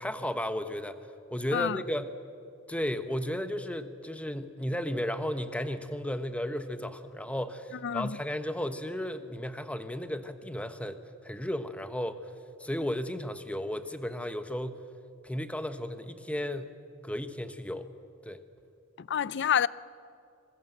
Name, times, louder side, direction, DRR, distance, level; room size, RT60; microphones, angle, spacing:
voice 1, 0.0-2.1 2.7-12.3 12.6-14.8 15.2-16.8 17.0-17.9 18.2-18.4, left 1 dB, 5° left, 1.1 m, -34 dB
voice 2, 7.8-8.2 19.0-19.7, left 8 dB, 55° left, 0.5 m, -28 dB
26.5 x 20.5 x 7.9 m
head